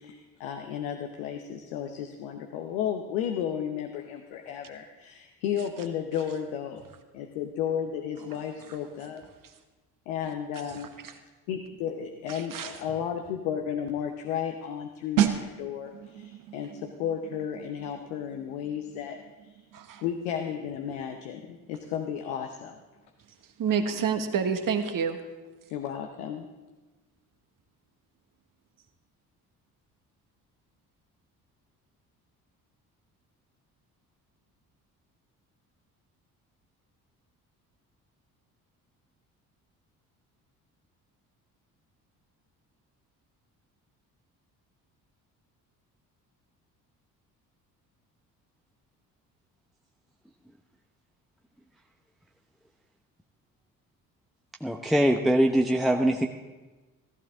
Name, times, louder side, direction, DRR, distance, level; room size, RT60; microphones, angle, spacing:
voice 1, 0.0-6.8 7.1-9.2 10.1-10.9 11.5-19.2 20.0-22.7 25.7-26.4, left 8 dB, 70° left, 5 dB, 1.0 m, -33 dB
voice 2, 10.2-11.2 12.3-12.7 19.7-20.0 23.6-25.2, right 6 dB, 45° right, 7 dB, 1.6 m, -30 dB
sound 1, 15.2-25.7 25.9-26.2, right 10 dB, 70° right, 1.0 m, -36 dB
voice 3, 54.6-56.3, right 1 dB, ahead, 2 dB, 0.9 m, -22 dB
15.0 x 14.5 x 3.7 m, 1.2 s
figure-of-eight pair, 50°, 46 cm